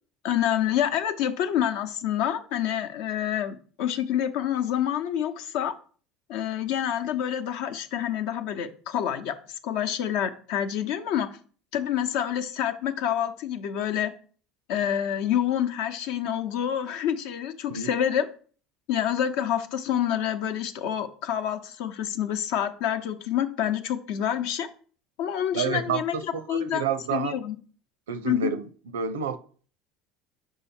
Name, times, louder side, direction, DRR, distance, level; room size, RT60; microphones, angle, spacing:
voice 1, 0.2-5.7 6.3-9.4 9.6-11.3 11.7-14.1 14.7-18.3 18.9-24.7 25.2-26.2 26.5-26.8 27.1-27.6 28.2-28.5, left 10 dB, 70° left, 0.8 m, -27 dB
voice 2, 25.5-27.4 28.1-28.7 28.9-29.4, right 6 dB, 85° right, 0.6 m, -29 dB
5.6 x 5.0 x 4.3 m
hypercardioid pair, 80°, 0 cm